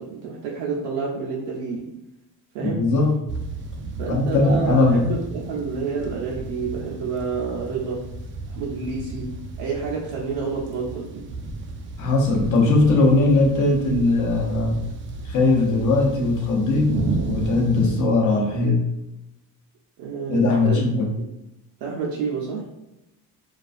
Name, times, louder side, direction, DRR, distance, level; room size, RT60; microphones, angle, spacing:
voice 1, 0.0-2.0 2.5-2.9 4.0-8.1 8.6-11.3 20.0-20.8 21.2-21.3 21.8-22.6, right 5 dB, 70° right, -3 dB, 0.6 m, -29 dB
voice 2, 2.6-3.1 4.1-5.1 12.0-14.8 15.2-17.0 17.3-18.8 20.3-21.1, left 2 dB, 40° left, 0 dB, 0.8 m, -19 dB
sound 1, 3.3-18.0, right 3 dB, 25° right, 0.4 m, -33 dB
2.3 x 2.3 x 2.4 m, 0.92 s
supercardioid pair, 75°, 47 cm